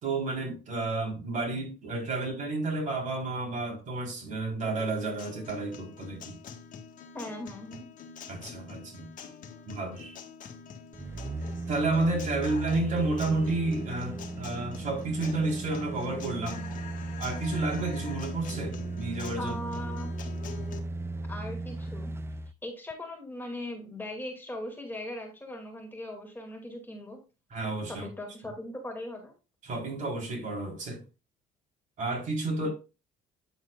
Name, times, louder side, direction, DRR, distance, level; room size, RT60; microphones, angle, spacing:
voice 1, 0.0-6.4 8.3-9.1 9.7-10.2 11.7-16.6 17.2-19.6 20.6-20.7 27.5-28.1 29.6-31.0 32.0-32.7, right 3 dB, 50° right, 3.8 m, -31 dB
Guitar, 4.8-20.8, left 6 dB, 50° left, 1.5 m, -45 dB
voice 2, 7.1-7.9 19.4-20.1 21.3-22.1 22.6-27.2 27.9-29.3 32.6-32.7, left 1 dB, 10° left, 2.3 m, -39 dB
sound 1, 10.9-22.5 22.9-23.0, right 2 dB, 15° right, 0.4 m, -37 dB
9.0 x 7.9 x 2.4 m
cardioid pair, 110°, 17 cm